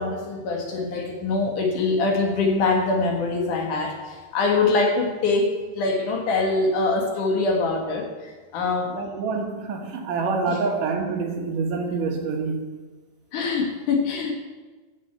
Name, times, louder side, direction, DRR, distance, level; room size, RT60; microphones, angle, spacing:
voice 1, 0.0-8.9 10.2-10.6 13.3-14.3, left 3 dB, 65° left, 2 dB, 3.1 m, -24 dB
voice 2, 8.9-12.7, right 4 dB, 70° right, 2 dB, 3.0 m, -26 dB
14.0 x 6.6 x 8.1 m, 1.3 s
omnidirectional pair, 4.0 m